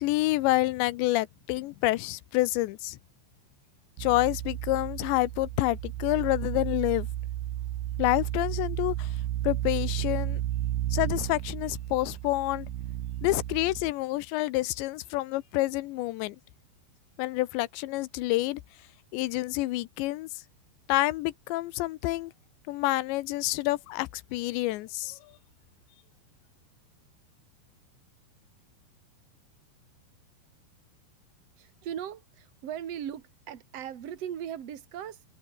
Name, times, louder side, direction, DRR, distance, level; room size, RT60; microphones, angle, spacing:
voice 1, 0.0-3.0 4.0-7.1 8.0-9.1 9.4-10.4 10.9-12.7 13.2-16.4 17.2-18.6 19.1-20.3 20.9-22.3 22.7-25.2, left 18 dB, 75° left, 2.9 m, -28 dB
sound 1, 4.0-13.9, right 13 dB, 65° right, 3.0 m, -33 dB
voice 2, 31.6-35.2, right 9 dB, 45° right, 2.1 m, -38 dB
omnidirectional pair, 5.6 m